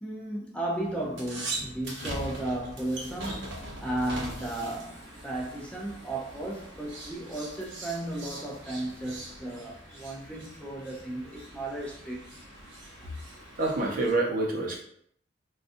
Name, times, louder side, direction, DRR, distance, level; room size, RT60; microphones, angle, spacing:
voice 1, 0.0-12.2, right 1 dB, 5° left, 0.5 m, -35 dB
sound 1, 0.8-14.1, right 1 dB, 80° right, 0.8 m, -41 dB
voice 2, 13.6-14.8, right 2 dB, 50° right, 0.7 m, -27 dB
3.8 x 2.3 x 2.5 m
head